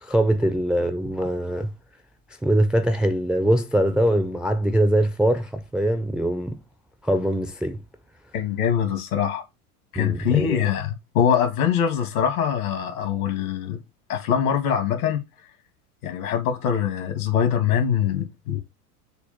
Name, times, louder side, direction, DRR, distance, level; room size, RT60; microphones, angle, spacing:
voice 1, 0.0-1.7 2.4-6.6 7.0-7.8 10.0-10.7, right 1 dB, ahead, 0.4 m, -22 dB
voice 2, 8.3-9.4 9.9-13.8 14.1-15.2 16.0-18.6, left 8 dB, 70° left, 2.0 m, -23 dB
6.8 x 2.5 x 5.5 m
hypercardioid pair, 90°, 45 cm